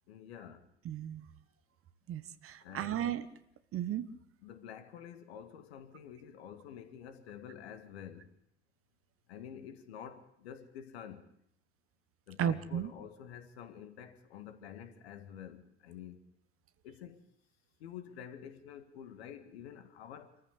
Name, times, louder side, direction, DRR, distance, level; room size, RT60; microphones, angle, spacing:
voice 1, 0.1-0.7 2.6-3.1 4.4-8.3 9.3-11.3 12.3-16.3 16.8-17.2 17.8-20.4, left 9 dB, 65° left, 2.0 m, -49 dB
voice 2, 0.8-1.2 2.1-3.3 3.7-4.1 12.4-12.9, right 9 dB, 40° right, 1.4 m, -34 dB
27.0 x 14.5 x 8.3 m
figure-of-eight pair, 60°, 33 cm